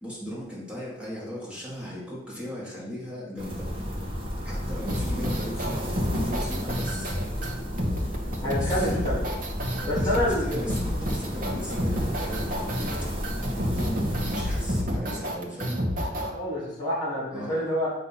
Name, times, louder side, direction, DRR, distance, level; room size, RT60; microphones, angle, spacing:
voice 1, 0.0-3.7 4.4-7.2 8.4-9.1 9.7-12.6 13.5-15.8 17.3-17.7, equal, 5° right, -9 dB, 1.8 m, -37 dB
sound 1, 3.4-14.8, equal, 30° right, 1.2 m, -33 dB
sound 2, 4.9-16.3, equal, 45° right, 0.9 m, -29 dB
voice 2, 8.4-9.3 9.8-10.6 12.8-13.1 16.2-17.9, left 1 dB, 20° left, -6 dB, 1.8 m, -28 dB
8.2 x 2.7 x 5.6 m, 0.89 s
head